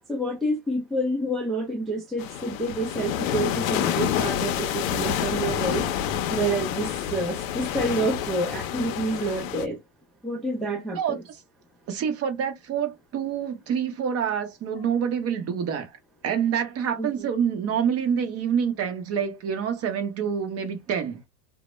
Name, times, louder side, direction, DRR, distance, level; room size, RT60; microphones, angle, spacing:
voice 1, 0.1-5.9 6.3-9.8 10.2-11.2 17.0-17.3, right 2 dB, ahead, 0.4 m, -28 dB
sound 1, 2.2-9.7, left 10 dB, 75° left, 0.6 m, -28 dB
voice 2, 11.9-15.9 16.2-21.2, right 7 dB, 35° right, 0.7 m, -27 dB
2.1 x 2.1 x 3.0 m
supercardioid pair, 110°, 40 cm